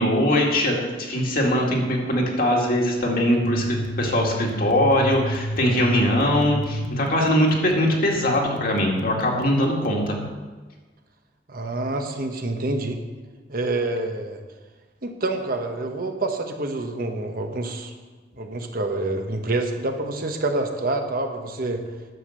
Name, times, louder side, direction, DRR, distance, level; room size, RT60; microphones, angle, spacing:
voice 1, 0.0-10.2, equal, 55° left, -1 dB, 2.1 m, -21 dB
sound 1, 3.4-10.3, left 1 dB, 90° left, 0.7 m, -31 dB
voice 2, 11.5-13.0 13.5-14.4 15.0-17.9 18.4-21.8, right 2 dB, 55° right, 4 dB, 1.2 m, -27 dB
10.5 x 7.3 x 6.5 m, 1.3 s
head